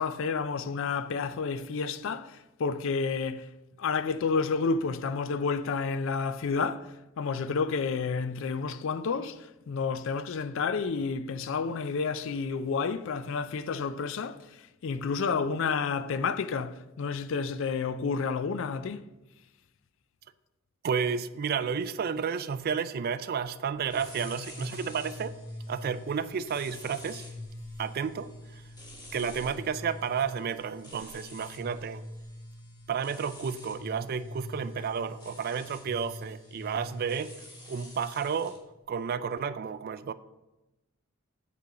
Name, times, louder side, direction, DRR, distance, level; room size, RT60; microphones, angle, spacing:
voice 1, 0.0-3.5 3.8-14.5 14.8-19.0, left 5 dB, 65° left, 0.4 m, -30 dB
voice 2, 20.8-25.3 25.7-27.2 27.8-28.6 29.1-32.0 32.9-37.3 37.7-38.6 38.9-40.1, right 6 dB, 45° right, 0.3 m, -32 dB
sound 1, 23.9-38.6, left 1 dB, 20° left, 1.5 m, -44 dB
8.4 x 3.8 x 5.8 m
head